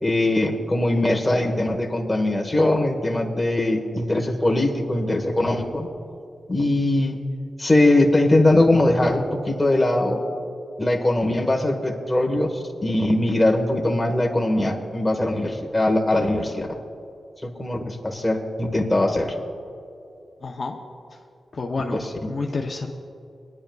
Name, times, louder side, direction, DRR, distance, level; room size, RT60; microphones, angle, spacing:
voice 1, 0.0-5.9 6.5-7.2 7.6-10.2 10.8-16.7 17.4-19.3 21.9-22.3, left 1 dB, 10° left, 1 dB, 1.2 m, -21 dB
voice 2, 20.4-20.8 21.5-22.0 22.3-22.9, left 3 dB, 45° left, 1 dB, 0.7 m, -28 dB
21.5 x 10.5 x 2.3 m, 2.6 s
wide cardioid pair, 130°, 0 cm